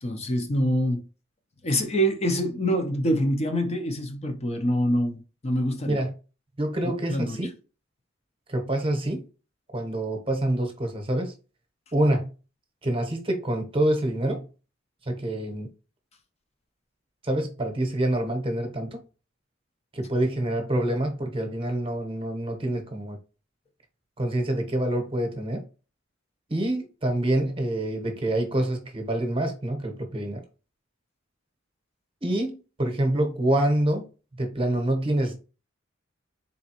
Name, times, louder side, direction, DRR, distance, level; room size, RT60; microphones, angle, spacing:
voice 1, 0.0-1.0 1.6-6.0 7.1-7.4, equal, 35° left, 0.6 m, -25 dB
voice 2, 6.6-7.5 8.5-9.2 9.7-11.3 11.9-12.3 12.8-14.5 15.1-15.7 17.2-19.0 19.9-23.2 24.2-25.6 26.5-30.4 32.2-34.1 34.4-35.4, right 1 dB, 25° right, 0.9 m, -26 dB
4.1 x 3.4 x 2.8 m
head